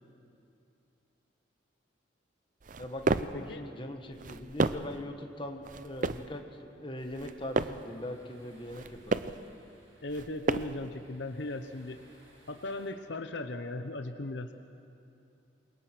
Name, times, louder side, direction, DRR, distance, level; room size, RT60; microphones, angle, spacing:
sound 1, 2.6-3.4 4.1-5.0 5.6-6.3 7.0-7.9 8.6-9.4 10.1-10.9, right 3 dB, 45° right, 0.5 m, -32 dB
voice 1, 2.8-9.2, left 1 dB, 25° left, 4 dB, 1.5 m, -41 dB
sound 2, 7.2-12.9, right 1 dB, 90° right, 6.8 m, -61 dB
voice 2, 10.0-12.0 12.5-14.5, left 2 dB, 70° left, 8 dB, 0.9 m, -37 dB
28.0 x 21.5 x 6.1 m, 2.6 s
head